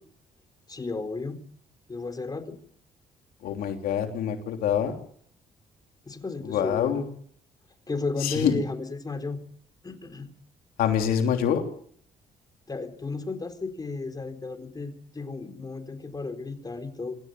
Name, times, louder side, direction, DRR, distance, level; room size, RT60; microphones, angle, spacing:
voice 1, 0.7-1.4 1.9-2.6 6.1-7.0 7.9-9.4 9.8-10.3 12.7-17.2, left 3 dB, 25° left, 7 dB, 4.0 m, -33 dB
voice 2, 3.4-4.9 6.4-7.0 8.2-8.6 10.8-11.6, left 8 dB, 85° left, 4 dB, 3.3 m, -25 dB
26.0 x 14.0 x 9.3 m, 0.63 s
cardioid pair, 90°, 15 cm